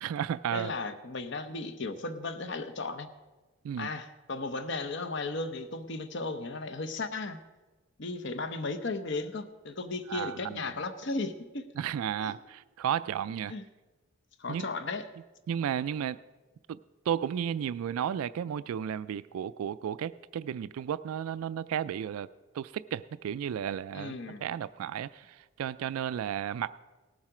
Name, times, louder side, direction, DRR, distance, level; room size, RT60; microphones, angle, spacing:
voice 1, 0.0-0.7 3.6-3.9 10.1-10.6 11.8-13.5 14.5-14.7 15.5-16.2 16.7-16.8 17.1-22.3 22.5-24.2 24.4-26.8, right 9 dB, 80° right, 16 dB, 0.3 m, -33 dB
voice 2, 0.5-3.1 3.8-7.4 8.0-11.7 12.2-12.3 13.5-13.6 14.4-15.1 23.9-24.4, left 3 dB, 55° left, 10 dB, 0.7 m, -35 dB
18.0 x 7.3 x 4.9 m, 1.2 s
head